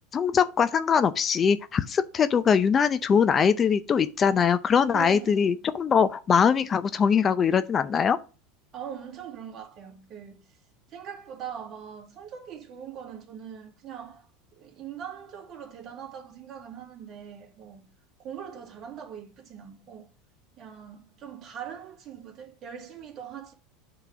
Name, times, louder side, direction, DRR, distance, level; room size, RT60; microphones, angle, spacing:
voice 1, 0.1-8.2, left 6 dB, 30° left, 0.5 m, -22 dB
voice 2, 4.9-5.5 8.7-10.6 10.9-17.9 18.2-20.1 20.6-23.5, right 8 dB, 40° right, 2.1 m, -41 dB
8.1 x 3.9 x 4.9 m
hypercardioid pair, 100°, 0 cm